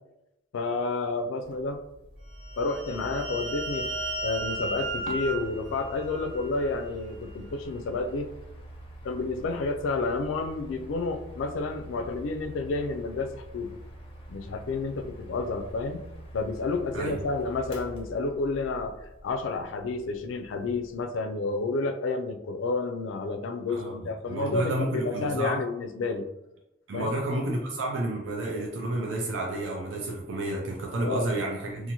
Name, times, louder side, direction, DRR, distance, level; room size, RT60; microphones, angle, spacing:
voice 1, 0.5-1.8 2.6-3.9 4.2-8.3 9.0-13.7 14.3-16.0 16.3-26.2 26.9-27.2 31.0-31.3, left 3 dB, 90° left, 7 dB, 0.3 m, -30 dB
Mechanical fan, 1.4-21.1, right 1 dB, 30° left, 0.5 m, -45 dB
sound 1, 2.4-6.8, right 2 dB, 65° right, 1.2 m, -35 dB
voice 2, 24.3-25.6 26.9-31.9, right 1 dB, 85° right, -1 dB, 0.4 m, -30 dB
2.6 x 2.5 x 2.8 m, 0.90 s
head